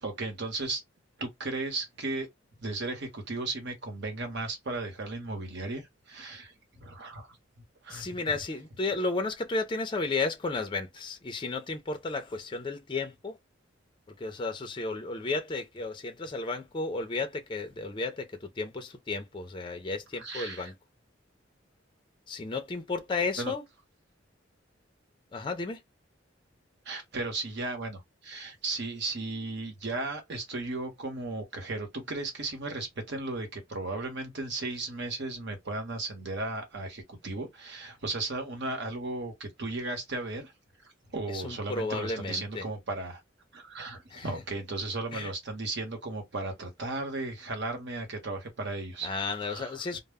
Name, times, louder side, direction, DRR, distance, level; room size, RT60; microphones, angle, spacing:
voice 1, 0.0-0.8 1.2-2.3 2.6-7.4 7.8-8.2 20.2-20.7 23.4-23.5 26.8-40.5 40.8-43.2 43.5-49.1 49.4-49.8, right 2 dB, 65° right, 0.9 m, -35 dB
voice 2, 7.9-13.4 14.2-20.7 22.3-23.6 25.3-25.8 41.3-42.6 44.1-44.3 45.1-45.3 49.0-50.0, left 3 dB, 25° left, 0.4 m, -33 dB
2.1 x 2.0 x 3.3 m
head